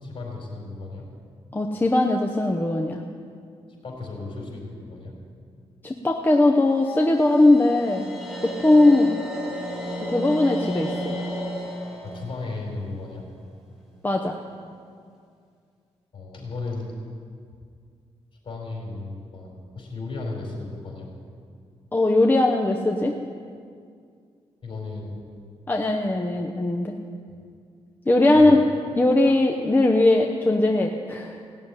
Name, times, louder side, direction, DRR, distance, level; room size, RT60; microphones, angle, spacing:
voice 1, 0.0-1.1 3.8-5.1 12.0-13.2 16.1-16.9 18.4-21.1 24.6-25.2 28.3-28.6, left 3 dB, 50° left, -1 dB, 4.6 m, -35 dB
voice 2, 1.5-3.0 5.8-8.1 8.4-9.2 10.1-11.2 14.0-14.4 21.9-23.1 25.7-26.9 28.1-28.6 29.0-31.4, left 2 dB, 15° left, 1 dB, 0.9 m, -19 dB
sound 1, 6.7-13.8, equal, 5° right, 3.3 m, -34 dB
17.0 x 7.2 x 9.8 m, 2.2 s
cardioid pair, 110°, 11 cm